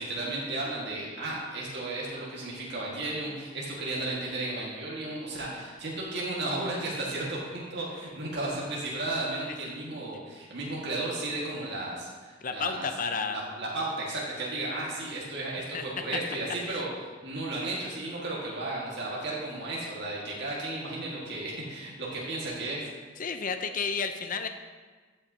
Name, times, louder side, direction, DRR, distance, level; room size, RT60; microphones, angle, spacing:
voice 1, 0.0-12.9 13.3-16.9 17.2-22.8, right 2 dB, 60° right, -5 dB, 1.8 m, -34 dB
voice 2, 12.4-13.4 15.7-15.8 16.1-16.2 16.7-16.8 23.2-24.5, left 5 dB, 45° left, 7 dB, 0.6 m, -31 dB
15.5 x 5.6 x 2.8 m, 1.4 s
head